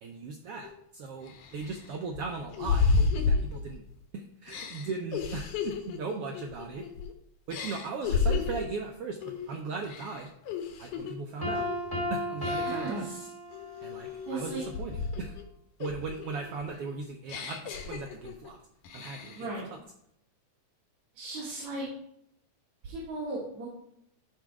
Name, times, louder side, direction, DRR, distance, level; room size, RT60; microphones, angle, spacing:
voice 1, 0.0-3.8 4.1-6.9 7.5-10.3 10.8-11.7 12.1-13.1 13.8-15.4 15.8-18.6 18.9-19.8, right 4 dB, 90° right, 3 dB, 1.3 m, -38 dB
sound 1, 0.6-0.7 1.3-4.0 4.5-7.1 7.5-8.7 9.2-9.5 9.8-11.1 11.6-11.9 12.4-13.0 13.5-15.4 15.8-18.5 18.8-19.5, left 4 dB, 80° left, 2.6 m, -32 dB
Piano, 11.4-14.0, left 1 dB, 10° left, 2.0 m, -33 dB
voice 2, 12.6-13.3 14.3-14.6 19.3-19.6 21.1-21.8 22.8-23.7, right 2 dB, 65° right, -5 dB, 3.0 m, -36 dB
12.5 x 4.2 x 4.7 m, 0.75 s
omnidirectional pair, 3.6 m